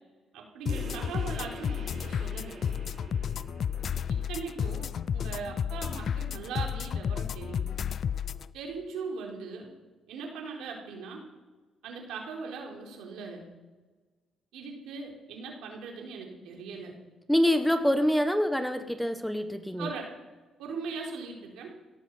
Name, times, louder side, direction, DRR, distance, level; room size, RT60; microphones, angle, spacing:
voice 1, 0.3-2.6 4.1-4.9 5.1-7.7 8.5-9.7 10.1-11.2 11.8-13.4 14.5-16.9 19.8-20.1 20.6-21.7, right 5 dB, 85° right, 0 dB, 4.1 m, -39 dB
sound 1, 0.7-8.5, left 8 dB, 55° left, 0.5 m, -32 dB
sound 2, 0.7-5.7, right 3 dB, 60° right, 4.1 m, -47 dB
voice 2, 17.3-19.9, equal, ahead, 9 dB, 1.3 m, -26 dB
17.0 x 9.3 x 7.9 m, 1.3 s
cardioid pair, 90°, 0 cm